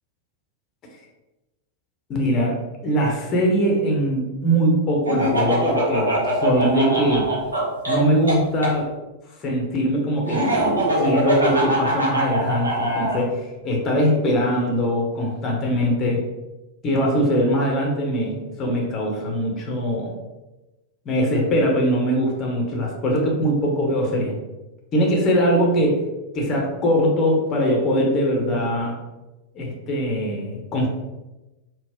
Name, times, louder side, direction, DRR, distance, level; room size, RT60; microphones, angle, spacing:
voice 1, 2.1-6.1 6.4-7.3 7.9-8.9 9.4-10.5 11.0-16.2 16.8-20.2 21.0-24.4 24.9-26.0 26.3-28.9 29.5-30.9, equal, 30° left, 0 dB, 0.9 m, -21 dB
Laughter, 5.1-8.7 10.3-13.2, equal, 75° right, 0.9 m, -22 dB
4.0 x 2.0 x 3.6 m, 1.1 s
figure-of-eight pair, 90°, 0 cm